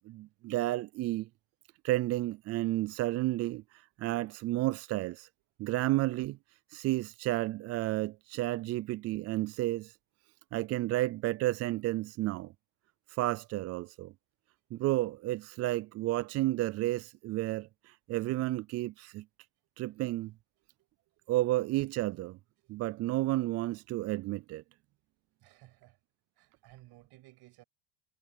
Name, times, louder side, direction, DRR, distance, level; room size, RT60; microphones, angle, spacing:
voice 1, 0.1-1.3 1.8-5.3 5.6-6.4 6.7-9.9 10.5-12.5 13.1-14.1 14.7-19.2 19.8-20.3 21.3-22.4 22.7-24.6, right 17 dB, 35° right, 0.4 m, -32 dB
voice 2, 20.6-21.3 22.6-22.7 25.4-26.0 26.4-27.6, right 17 dB, 55° right, 7.9 m, -59 dB
supercardioid pair, 115°, 45 cm